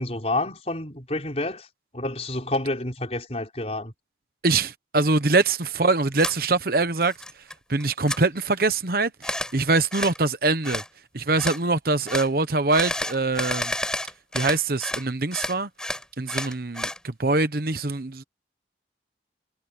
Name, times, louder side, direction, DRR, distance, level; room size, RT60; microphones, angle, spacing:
voice 1, 0.0-1.7 1.9-3.9, left 2 dB, 35° left, 5.0 m, -29 dB
voice 2, 4.4-7.1 7.7-10.8 11.1-13.7 14.3-15.7 16.2-18.2, right 3 dB, 55° right, 1.1 m, -23 dB
sound 1, 6.2-6.4 6.8-7.5 7.8-8.2 9.2-9.5 9.9-10.2 10.6-10.9 11.4-11.6 12.1-12.3 12.7-15.1 15.3-17.0, left 1 dB, 5° left, 6.1 m, -30 dB
head